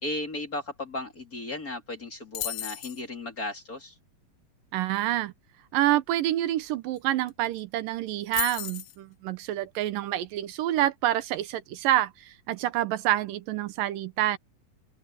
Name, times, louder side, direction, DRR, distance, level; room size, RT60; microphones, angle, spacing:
voice 1, 0.0-3.9, left 2 dB, 25° left, 3.1 m, -35 dB
sound 1, 2.3-3.0 7.0-7.1 7.3-7.6 8.3-9.0, left 13 dB, 75° left, 1.4 m, -33 dB
voice 2, 4.7-5.3 5.7-14.4, right 13 dB, 85° right, 2.6 m, -27 dB
open air
omnidirectional pair, 3.8 m